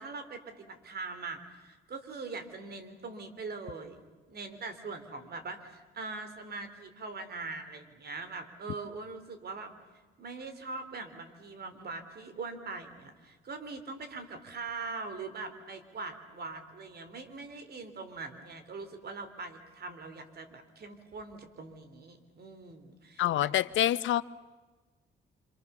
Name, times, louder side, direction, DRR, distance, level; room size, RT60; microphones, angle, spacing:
voice 1, 0.0-4.0 4.3-9.7 10.2-23.5, right 3 dB, 55° right, 8 dB, 3.8 m, -42 dB
voice 2, 23.2-24.2, left 13 dB, 75° left, 16 dB, 0.7 m, -26 dB
27.0 x 26.5 x 7.1 m, 1.2 s
cardioid pair, 90°, 20 cm